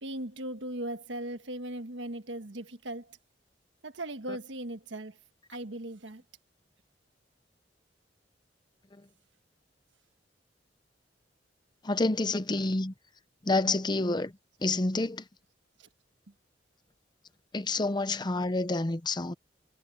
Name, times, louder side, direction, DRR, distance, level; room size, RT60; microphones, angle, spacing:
voice 1, 0.0-3.2 3.8-5.2 5.5-6.2 15.8-15.9, right 1 dB, 85° right, 1.4 m, -38 dB
voice 2, 11.8-12.9 13.4-14.3 14.6-15.2 17.5-19.3, left 2 dB, 25° left, 0.7 m, -28 dB
head